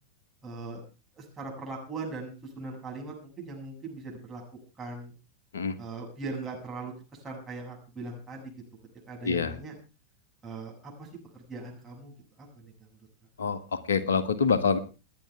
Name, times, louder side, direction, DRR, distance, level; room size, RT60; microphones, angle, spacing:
voice 1, 0.4-0.8 1.1-4.4 4.8-5.1 5.8-6.9 7.2-8.5 9.1-9.7 10.4-11.1 11.3-12.9, right 3 dB, 20° right, -1 dB, 7.5 m, -40 dB
voice 2, 13.4-14.8, left 5 dB, 65° left, 11 dB, 1.7 m, -26 dB
28.5 x 10.0 x 3.5 m, 0.33 s
figure-of-eight pair, 90°, 0 cm